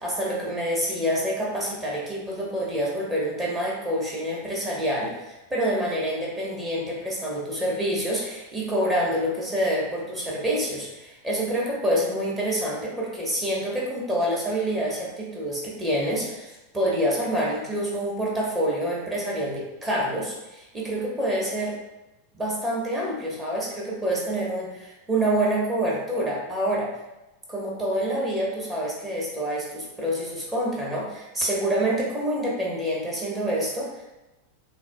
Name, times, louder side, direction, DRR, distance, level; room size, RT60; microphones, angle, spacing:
voice 1, 0.0-21.8 22.3-26.9 27.5-34.0, right 1 dB, 15° right, -4 dB, 1.1 m, -27 dB
6.2 x 2.2 x 2.2 m, 1.0 s
figure-of-eight pair, 90°, 0 cm